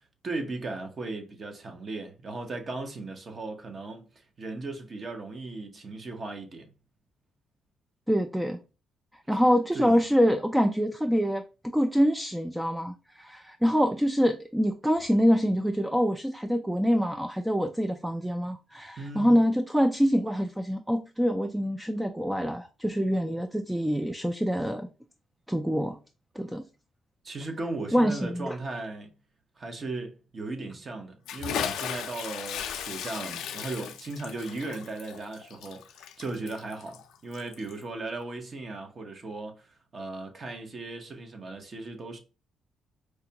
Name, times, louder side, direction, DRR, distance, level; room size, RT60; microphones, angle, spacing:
voice 1, 0.2-6.7 9.3-9.4 9.7-10.0 19.0-19.4 27.2-29.1 29.6-42.2, right 2 dB, 40° right, 0.9 m, -37 dB
voice 2, 8.1-8.6 9.3-11.4 11.7-24.9 25.5-26.0 26.4-26.6 27.9-28.6, equal, 5° right, 0.3 m, -25 dB
Bathtub (filling or washing) / Splash splatter, 31.3-37.8, left 9 dB, 85° left, 0.4 m, -36 dB
4.7 x 2.2 x 2.8 m
cardioid pair, 90°, 0 cm